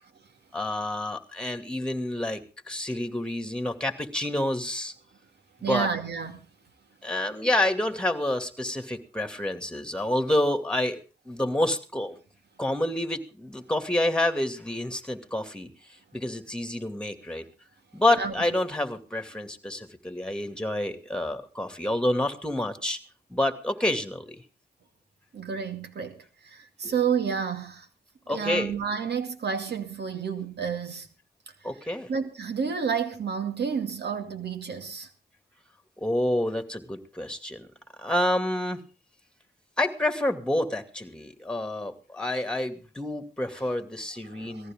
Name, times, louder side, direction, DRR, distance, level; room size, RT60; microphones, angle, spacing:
voice 1, 0.5-4.9 5.7-5.9 7.0-11.0 11.3-12.2 12.6-15.7 16.1-17.5 17.9-23.0 23.3-24.4 26.8-26.9 28.3-28.7 31.6-32.1 36.0-37.7 38.0-38.8 39.8-44.7, left 1 dB, 5° left, 2.5 m, -28 dB
voice 2, 5.6-6.5 18.2-18.3 25.3-27.9 28.3-31.1 31.6-31.7 32.1-35.1 43.6-43.7 44.3-44.7, right 6 dB, 75° right, 2.4 m, -30 dB
19.0 x 14.5 x 3.7 m
cardioid pair, 60°, 17 cm